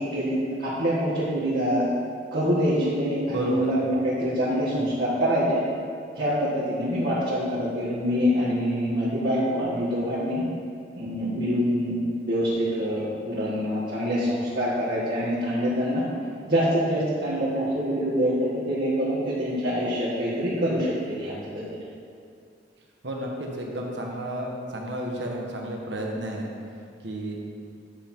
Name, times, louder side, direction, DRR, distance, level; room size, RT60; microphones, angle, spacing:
voice 1, 0.0-1.9 2.3-5.6 6.1-10.4 11.0-12.0 12.3-16.0 16.5-21.6, equal, 65° right, -10 dB, 1.8 m, -25 dB
voice 2, 3.3-3.7 23.0-26.5 27.0-27.4, right 1 dB, 80° right, 0 dB, 1.2 m, -31 dB
9.7 x 5.7 x 4.5 m, 2.3 s
head